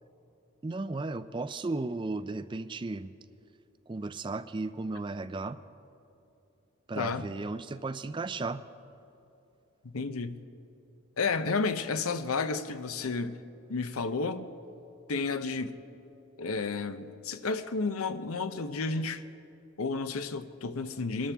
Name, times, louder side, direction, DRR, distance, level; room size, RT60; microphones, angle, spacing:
voice 1, 0.6-3.1 3.9-5.6 6.9-8.6, right 3 dB, 20° right, 0.3 m, -35 dB
voice 2, 9.8-10.4 11.2-13.4 13.7-14.5 15.1-15.7 16.4-19.2 19.8-21.3, left 4 dB, 85° left, 0.7 m, -31 dB
23.5 x 13.0 x 3.5 m
head